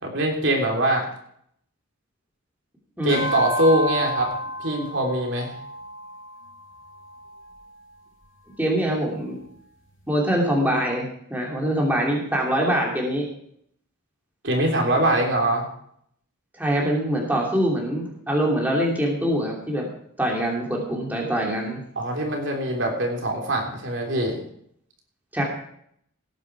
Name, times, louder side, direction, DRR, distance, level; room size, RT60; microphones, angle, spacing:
voice 1, 0.0-1.0 3.0-4.3 4.6-5.5 14.4-15.7 21.9-24.4, right 1 dB, 60° right, 1 dB, 3.3 m, -23 dB
sound 1, 3.1-7.7, left 1 dB, 65° left, 4.9 m, -31 dB
voice 2, 8.6-9.4 10.1-13.3 16.5-19.9 20.2-21.8 25.3-25.4, right 1 dB, 10° right, -2 dB, 2.8 m, -24 dB
18.0 x 9.9 x 4.7 m, 0.68 s
head